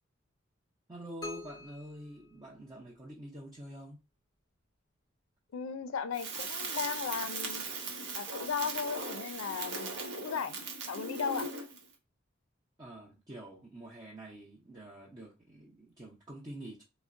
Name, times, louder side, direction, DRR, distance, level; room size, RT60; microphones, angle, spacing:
voice 1, 0.9-4.0 12.8-16.8, right 1 dB, 20° right, 0.6 m, -47 dB
sound 1, 1.2-3.1, left 3 dB, 20° left, 0.7 m, -47 dB
voice 2, 5.5-7.7 8.1-10.6 10.9-11.5, left 6 dB, 85° left, 0.4 m, -36 dB
Crackle, 6.1-11.8, right 3 dB, 60° right, 0.8 m, -39 dB
3.6 x 2.1 x 2.4 m
head